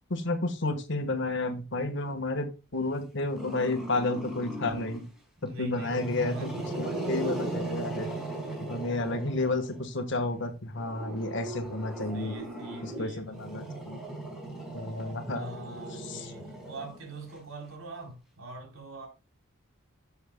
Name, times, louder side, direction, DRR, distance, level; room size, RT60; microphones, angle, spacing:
voice 1, 0.1-5.0 5.4-6.5 6.8-8.1 8.6-12.4 12.8-14.0 14.7-15.5 16.0-16.3, left 2 dB, 60° left, 1.4 m, -31 dB
Growling, 3.4-5.1 5.6-9.8 10.8-17.3, right 2 dB, ahead, 5.1 m, -38 dB
voice 2, 5.4-6.7 12.1-13.5 15.3-19.1, right 2 dB, 75° right, 3.8 m, -43 dB
12.0 x 7.2 x 2.2 m
head